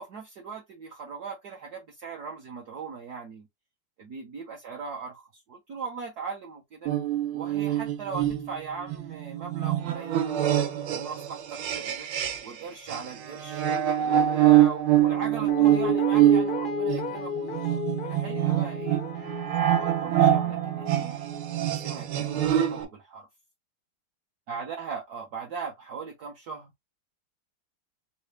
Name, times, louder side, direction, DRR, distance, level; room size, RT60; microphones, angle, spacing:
voice 1, 0.0-3.5 4.0-6.9 7.3-10.3 10.9-12.1 12.4-13.6 14.0-19.0 19.7-21.2 21.6-23.3 24.5-26.7, right 5 dB, 55° right, 1.4 m, -39 dB
sound 1, 6.9-12.6 12.9-22.9, right 12 dB, 85° right, 1.6 m, -25 dB
Guitar, 15.0-22.0 22.3-22.4, left 6 dB, 65° left, 0.5 m, -35 dB
4.0 x 2.3 x 3.2 m
omnidirectional pair, 2.3 m